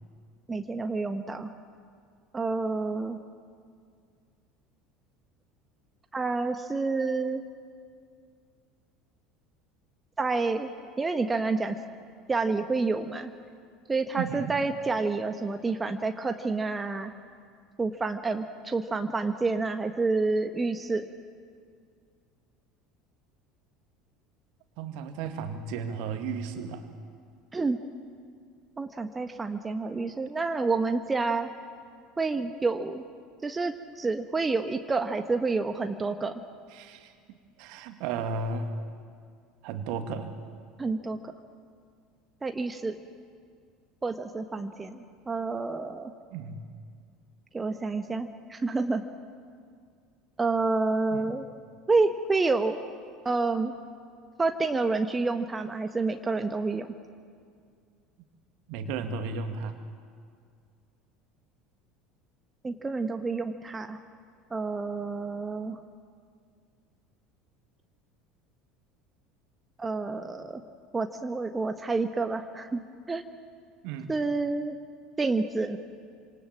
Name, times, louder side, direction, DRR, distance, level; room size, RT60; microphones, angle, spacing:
voice 1, 0.5-1.5 2.3-3.2 6.1-7.4 10.2-10.7 11.0-11.8 12.3-13.3 13.9-17.1 17.8-21.1 27.5-27.8 28.8-31.5 32.2-33.0 33.4-36.4 40.8-41.3 42.4-43.0 44.0-46.1 47.5-49.0 50.4-51.5 51.9-52.8 53.2-53.7 54.4-56.9 62.6-64.0 64.5-65.8 69.8-70.6 70.9-73.2 74.1-74.7 75.2-75.8, right 3 dB, 20° right, 7 dB, 1.4 m, -29 dB
voice 2, 14.1-14.5 24.8-26.9 36.7-38.8 39.6-40.3 46.3-46.6 51.1-51.3 58.7-59.8 73.8-74.1, right 5 dB, 55° right, 7 dB, 2.3 m, -34 dB
28.0 x 26.5 x 7.7 m, 2.2 s
figure-of-eight pair, 70°, 0 cm